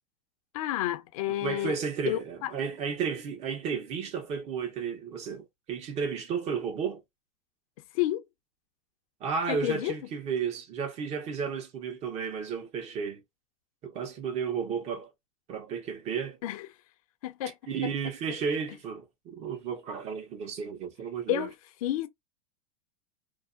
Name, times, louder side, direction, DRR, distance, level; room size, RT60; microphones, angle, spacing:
voice 1, 0.5-1.8 2.1-2.5 7.9-8.3 9.5-10.0 16.4-16.7 17.2-17.5 21.3-21.5 21.8-22.1, left 13 dB, 70° left, 0.6 m, -30 dB
voice 2, 1.4-7.0 9.2-13.2 13.8-15.1 15.5-16.4 17.7-21.5, right 6 dB, 35° right, 0.9 m, -33 dB
2.6 x 2.1 x 2.4 m
supercardioid pair, 125°, 19 cm